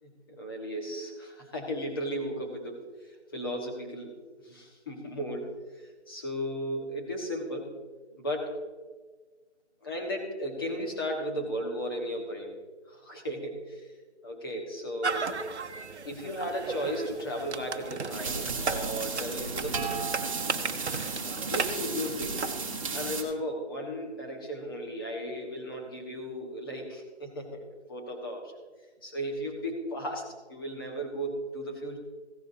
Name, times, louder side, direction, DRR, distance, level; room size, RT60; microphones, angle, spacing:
voice 1, 0.0-4.2 4.4-5.6 6.1-7.8 8.2-8.6 9.8-12.5 12.9-13.9 14.2-15.4 16.0-20.0 21.5-22.5 22.9-28.5 29.0-32.0, equal, 20° left, 0 dB, 1.3 m, -35 dB
sound 1, 15.0-22.8, right 4 dB, 70° right, 0.9 m, -36 dB
sound 2, 18.1-23.2, right 4 dB, 30° right, 1.3 m, -33 dB
15.5 x 11.5 x 2.7 m, 1.4 s
figure-of-eight pair, 165°, 34 cm